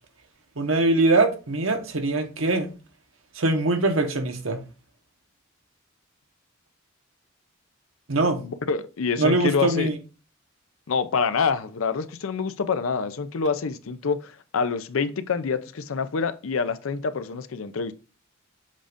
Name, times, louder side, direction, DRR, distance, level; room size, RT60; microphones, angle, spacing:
voice 1, 0.6-2.7 3.4-4.6 8.1-8.4 9.2-10.0, right 2 dB, 75° right, 1.1 m, -22 dB
voice 2, 8.3-9.9 10.9-17.9, left 5 dB, 85° left, 0.5 m, -26 dB
7.4 x 2.5 x 5.0 m
head